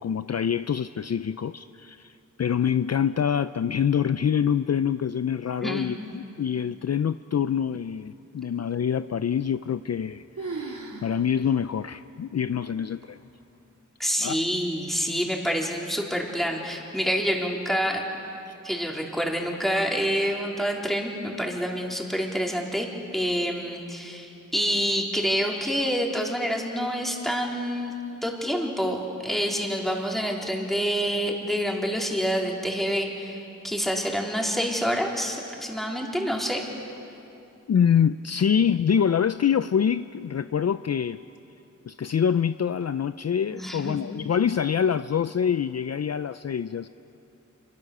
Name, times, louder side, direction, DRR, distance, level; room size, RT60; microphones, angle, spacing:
voice 1, 0.0-2.1 2.4-13.2 14.2-14.3 37.7-41.2 41.9-46.9, left 8 dB, 55° left, 12 dB, 0.5 m, -25 dB
sound 1, 9.6-10.1 10.4-11.1 11.4-11.5 12.2-12.3 13.0-13.4, right 3 dB, 70° right, 3.4 m, -36 dB
voice 2, 14.0-18.0 18.6-22.9 23.1-27.9 28.2-36.6 43.5-44.0, equal, ahead, -1 dB, 3.7 m, -27 dB
27.5 x 23.0 x 6.7 m, 2.8 s
wide cardioid pair, 70°, 31 cm